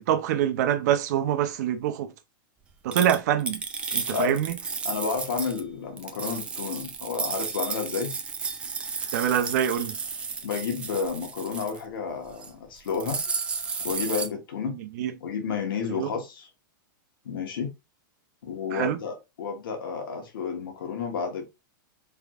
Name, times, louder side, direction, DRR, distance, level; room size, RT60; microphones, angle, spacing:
voice 1, 0.0-2.1 2.8-3.6 3.9-4.5 9.1-9.9 15.0-15.1 15.9-16.1 18.7-19.0, right 10 dB, 50° right, 0.6 m, -25 dB
sound 1, 2.9-5.6 6.0-11.8 12.2-12.5 12.8-14.3, right 5 dB, 10° right, 0.4 m, -33 dB
voice 2, 4.8-8.1 10.4-13.2 13.8-14.7 15.2-16.5 17.2-17.7 18.4-21.4, left 5 dB, 80° left, 1.3 m, -31 dB
4.5 x 3.4 x 2.4 m
supercardioid pair, 160°, 11 cm